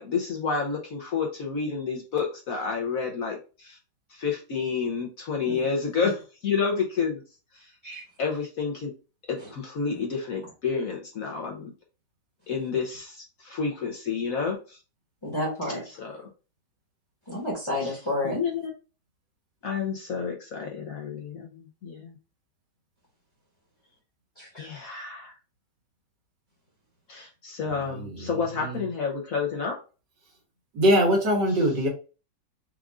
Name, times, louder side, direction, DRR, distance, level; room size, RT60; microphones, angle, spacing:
voice 1, 0.0-3.8 4.1-7.2 8.2-8.9 9.3-11.7 12.5-14.8 16.0-16.2 17.8-17.9 18.2-18.7 19.6-22.2 24.6-25.3 27.1-29.8 31.5-31.7, left 5 dB, 55° left, 1 dB, 1.1 m, -30 dB
voice 2, 15.2-15.8 17.3-18.4 24.4-24.7, left 1 dB, 15° left, -3 dB, 1.3 m, -30 dB
voice 3, 30.8-31.9, equal, 70° right, -1 dB, 2.2 m, -21 dB
4.8 x 2.5 x 3.6 m, 0.34 s
omnidirectional pair, 2.0 m